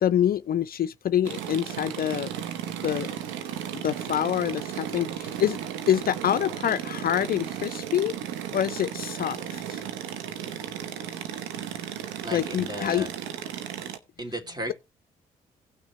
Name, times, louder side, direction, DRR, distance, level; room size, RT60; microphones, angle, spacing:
voice 1, 0.0-2.3 2.8-3.2 3.7-5.6 5.9-8.1 8.5-9.8 12.3-13.1, left 10 dB, 50° left, 0.5 m, -26 dB
sound 1, 1.2-14.0, right 9 dB, 80° right, 0.9 m, -35 dB
voice 2, 12.2-13.1 14.2-14.7, equal, 20° right, 2.8 m, -34 dB
17.0 x 6.1 x 3.1 m
hypercardioid pair, 40°, 19 cm